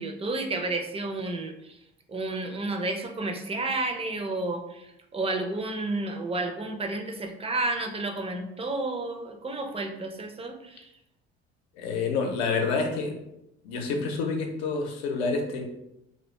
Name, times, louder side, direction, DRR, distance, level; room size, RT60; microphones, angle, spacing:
voice 1, 0.0-1.8 2.1-10.9, right 2 dB, 20° right, 4 dB, 0.4 m, -31 dB
voice 2, 11.8-13.2 13.6-15.6, left 4 dB, 80° left, 2 dB, 0.6 m, -28 dB
2.4 x 2.2 x 3.0 m, 0.86 s
hypercardioid pair, 60°, 32 cm